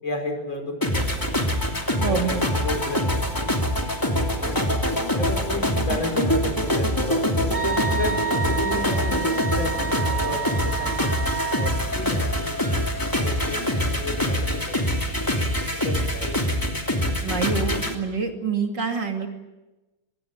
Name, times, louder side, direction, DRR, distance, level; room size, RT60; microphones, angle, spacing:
voice 1, 0.0-1.3 2.0-3.5 4.3-4.8 5.1-7.5 7.9-8.1 8.5-12.6 13.0-14.8 15.4-15.6 15.8-16.9, left 2 dB, 75° left, 4 dB, 5.7 m, -33 dB
sound 1, 0.8-17.9, equal, 10° left, 2.7 m, -24 dB
voice 2, 2.0-2.4 17.2-19.3, right 5 dB, 60° right, 3 dB, 3.3 m, -26 dB
Wind instrument woodwind instrument, 7.5-11.8, right 6 dB, 30° right, 2.8 m, -30 dB
25.0 x 21.0 x 8.7 m, 1.1 s
omnidirectional pair, 2.1 m